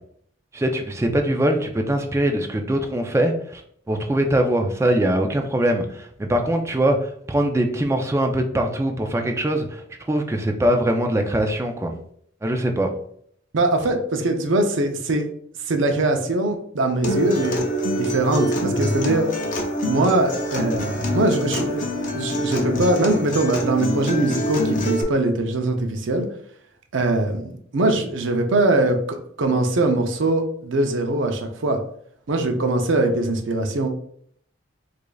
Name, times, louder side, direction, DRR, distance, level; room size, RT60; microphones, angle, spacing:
voice 1, 0.5-3.6 3.9-11.9 12.4-12.9, right 1 dB, 15° right, 4 dB, 0.3 m, -22 dB
voice 2, 13.5-15.3 15.7-17.6 17.9-19.3 19.9-26.2 26.9-27.5 27.7-31.8 32.3-33.9, right 2 dB, 65° right, 5 dB, 0.5 m, -22 dB
Acoustic guitar, 17.0-25.0, equal, 40° left, 0.6 m, -25 dB
4.8 x 2.5 x 2.3 m, 0.65 s
head